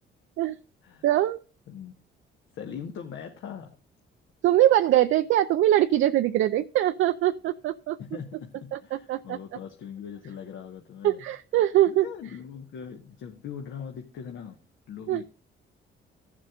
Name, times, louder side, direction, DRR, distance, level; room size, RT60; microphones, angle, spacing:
voice 1, 1.0-1.4 4.4-8.0 8.7-9.4 11.0-12.1 15.1-15.2, right 13 dB, 75° right, 8 dB, 0.5 m, -22 dB
voice 2, 2.5-3.7 8.0-11.2 11.9-14.6 14.9-15.2, left 7 dB, 75° left, 3 dB, 1.1 m, -40 dB
15.5 x 7.4 x 2.4 m, 0.35 s
cardioid pair, 90°, 20 cm